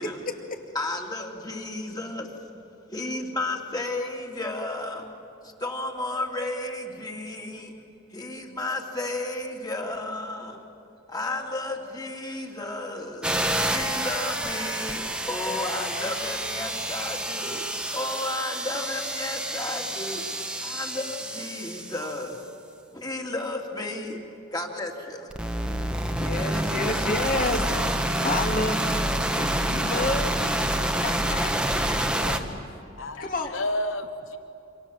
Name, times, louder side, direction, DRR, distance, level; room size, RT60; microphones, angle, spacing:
voice 1, 0.0-0.6 26.2-31.5 32.4-32.6 33.2-33.5, left 2 dB, 45° left, 3 dB, 2.5 m, -30 dB
voice 2, 0.7-2.3 2.9-5.1 5.4-7.7 8.1-10.6 11.1-13.3 13.6-17.6 17.9-20.2 20.6-22.4 22.9-24.2 24.5-25.3, left 2 dB, 20° left, 1 dB, 2.7 m, -33 dB
sound 1, 13.2-22.2 25.3-32.4, right 1 dB, 5° right, 1.3 m, -28 dB
voice 3, 32.0-32.4 33.0-34.4, left 1 dB, 85° left, 9 dB, 1.0 m, -32 dB
28.0 x 26.0 x 7.4 m, 2.7 s
head